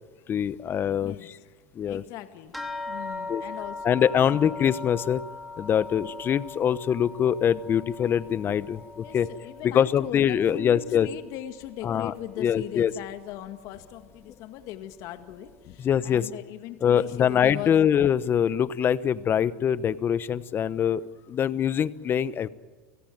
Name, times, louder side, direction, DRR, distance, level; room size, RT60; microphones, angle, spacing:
voice 1, 0.3-1.3 1.7-2.0 3.3-3.4 3.8-5.2 5.6-9.3 9.7-11.1 11.8-12.9 15.8-16.3 16.8-21.0 21.3-22.5, left 9 dB, 35° left, 16 dB, 1.0 m, -24 dB
voice 2, 1.9-2.5 2.9-4.5 9.0-17.8, left 13 dB, 55° left, 8 dB, 2.0 m, -39 dB
sound 1, 2.5-11.4 11.7-12.6 13.3-13.4 13.8-14.0, left 3 dB, ahead, 3.5 m, -40 dB
30.0 x 17.0 x 9.4 m, 1.4 s
hypercardioid pair, 105°, 7 cm